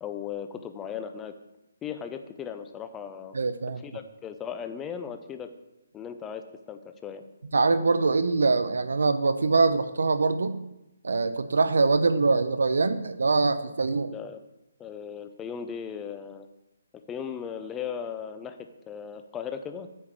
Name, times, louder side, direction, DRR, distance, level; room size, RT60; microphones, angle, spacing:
voice 1, 0.0-1.3 1.8-3.3 3.8-5.5 5.9-7.2 14.1-14.4 14.8-16.5 17.1-18.6 18.9-19.9, left 7 dB, 10° left, 8 dB, 0.4 m, -37 dB
voice 2, 3.3-3.8 7.5-10.6 11.0-14.1, right 3 dB, 85° right, 11 dB, 0.8 m, -23 dB
8.5 x 4.9 x 7.3 m, 0.92 s
hypercardioid pair, 175°, 0 cm